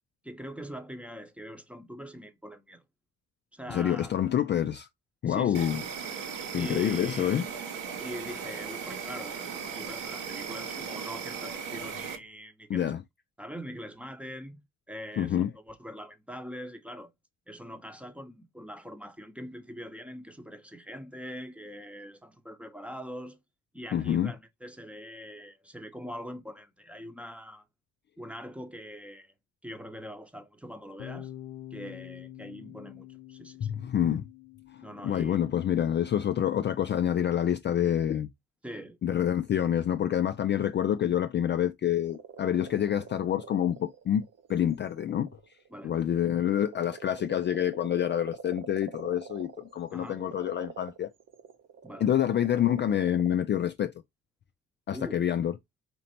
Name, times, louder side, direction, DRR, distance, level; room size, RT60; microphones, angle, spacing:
voice 1, 0.2-2.8 3.5-4.1 5.3-5.7 6.6-7.4 8.0-12.9 13.4-17.1 17.5-23.4 23.7-27.7 28.2-29.3 29.6-31.3 31.7-33.7 34.8-35.4 38.6-39.0 45.7-46.0 49.9-50.2 51.8-52.1 54.9-55.3, equal, 5° right, 0.8 m, -43 dB
voice 2, 3.7-4.9 5.2-5.8 6.5-7.5 12.7-13.0 15.2-15.5 23.9-24.3 33.6-34.2 34.7-38.3 39.0-45.3 45.8-51.1 52.0-53.9 54.9-55.5, left 10 dB, 35° left, 0.4 m, -27 dB
Insect, 5.5-12.2, right 6 dB, 75° right, 1.2 m, -37 dB
Bass guitar, 31.0-37.2, left 12 dB, 75° left, 0.6 m, -47 dB
sound 1, 42.0-53.3, right 6 dB, 50° right, 0.8 m, -46 dB
4.4 x 2.8 x 2.8 m
supercardioid pair, 55°, 32 cm